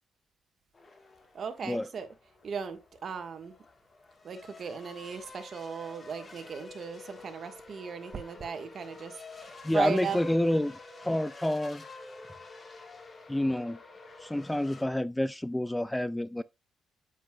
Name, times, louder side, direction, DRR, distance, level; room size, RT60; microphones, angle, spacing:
sound 1, 0.7-14.8, left 3 dB, 30° left, 1.4 m, -49 dB
voice 1, 1.3-2.1 2.4-3.5 4.2-10.2, right 6 dB, 50° right, 1.4 m, -37 dB
voice 2, 9.6-11.8 13.3-13.8 14.2-16.4, left 1 dB, 10° left, 0.3 m, -29 dB
8.2 x 7.5 x 2.3 m
cardioid pair, 90°, 0 cm